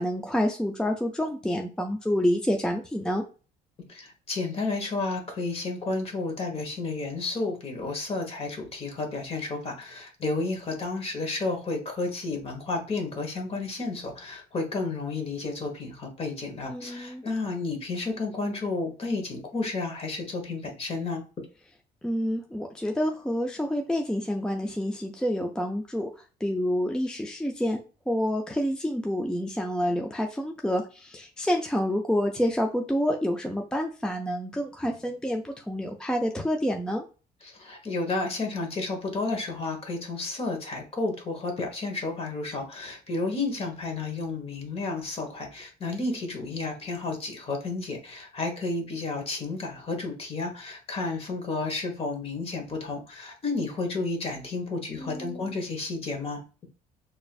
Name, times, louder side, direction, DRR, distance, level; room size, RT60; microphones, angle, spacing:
voice 1, 0.0-3.2 16.6-17.2 22.0-27.8 28.1-37.0 55.0-55.5, equal, 5° left, 2 dB, 0.4 m, -28 dB
voice 2, 3.9-21.2 37.4-56.4, left 3 dB, 35° left, 3 dB, 1.2 m, -31 dB
4.1 x 2.6 x 2.4 m, 0.35 s
cardioid pair, 110°, 17 cm